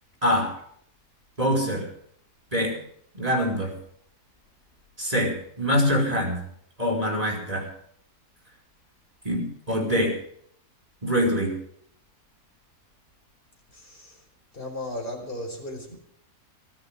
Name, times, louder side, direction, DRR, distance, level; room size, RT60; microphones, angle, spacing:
voice 1, 0.2-0.5 1.4-1.9 2.5-2.8 3.1-3.8 5.0-6.4 6.8-7.7 9.3-10.2 11.0-11.6, equal, 20° right, 1 dB, 5.3 m, -24 dB
voice 2, 13.7-14.2 14.5-16.0, left 1 dB, 35° left, 2 dB, 4.9 m, -36 dB
24.0 x 13.5 x 3.6 m, 0.67 s
omnidirectional pair, 1.7 m